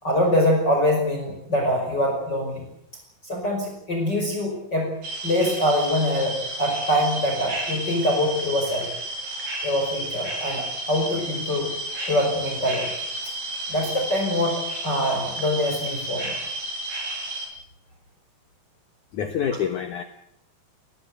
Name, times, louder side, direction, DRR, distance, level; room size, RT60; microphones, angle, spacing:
voice 1, 0.0-2.6 3.2-4.9 5.2-8.9 9.6-11.7 12.1-12.9 13.7-16.4, left 1 dB, 25° left, 1 dB, 5.6 m, -24 dB
sound 1, 5.0-17.5, right 1 dB, 70° right, 8.0 m, -32 dB
voice 2, 19.1-20.0, left 8 dB, 60° left, 8 dB, 2.3 m, -26 dB
22.5 x 19.5 x 8.0 m, 0.76 s
omnidirectional pair, 4.8 m